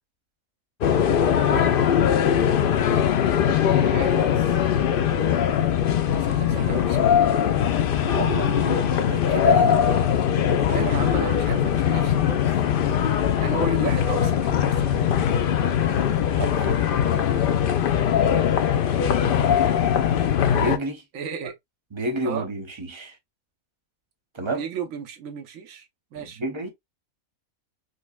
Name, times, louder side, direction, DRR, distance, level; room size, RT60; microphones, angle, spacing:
sound 1, 0.8-20.8, left 9 dB, 80° left, 0.5 m, -21 dB
voice 1, 1.5-1.8 3.4-4.6 6.0-7.2 10.7-12.5 13.4-15.0 18.3-18.5 21.1-21.5 22.2-22.5 24.5-25.9 26.1-26.4, right 6 dB, 70° right, 1.2 m, -34 dB
voice 2, 8.0-9.8 16.4-17.2 20.5-21.0 21.9-23.2 24.3-24.7 26.1-26.7, right 2 dB, 25° right, 0.7 m, -30 dB
5.2 x 2.1 x 2.3 m
omnidirectional pair, 1.5 m